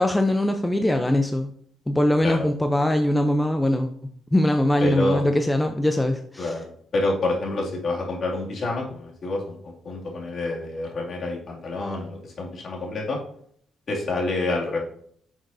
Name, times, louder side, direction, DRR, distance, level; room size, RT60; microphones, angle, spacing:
voice 1, 0.0-1.5 1.9-3.9 4.3-6.5, left 1 dB, 10° left, 5 dB, 0.6 m, -21 dB
voice 2, 4.8-5.3 6.4-6.6 6.9-13.2 13.9-14.8, left 2 dB, 50° left, -2 dB, 2.5 m, -28 dB
10.0 x 6.2 x 2.7 m, 0.64 s
cardioid pair, 90°, 0 cm